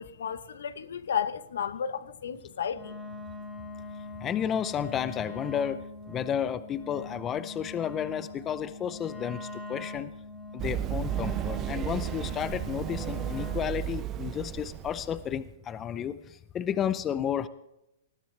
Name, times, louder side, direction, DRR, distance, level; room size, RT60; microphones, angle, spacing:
voice 1, 0.0-2.9, left 8 dB, 80° left, 1.0 m, -33 dB
Wind instrument woodwind instrument, 2.7-13.7, left 2 dB, 5° left, 2.9 m, -42 dB
voice 2, 4.2-10.1 10.5-16.2 16.5-17.5, left 9 dB, 20° left, 0.6 m, -32 dB
Run, 10.6-15.4, right 12 dB, 30° right, 0.4 m, -34 dB
20.0 x 14.5 x 3.3 m
hypercardioid pair, 140°, 0 cm